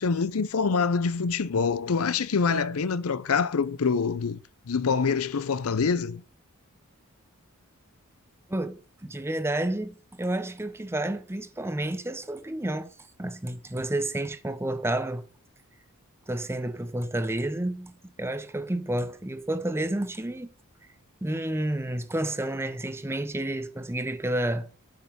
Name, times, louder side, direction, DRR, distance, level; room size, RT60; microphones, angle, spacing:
voice 1, 0.0-4.4 4.7-6.2, left 5 dB, 75° left, 0.6 m, -25 dB
voice 2, 8.5-12.9 13.2-15.3 16.3-20.5 21.2-24.7, right 1 dB, 10° right, 0.7 m, -30 dB
8.7 x 5.5 x 6.1 m
head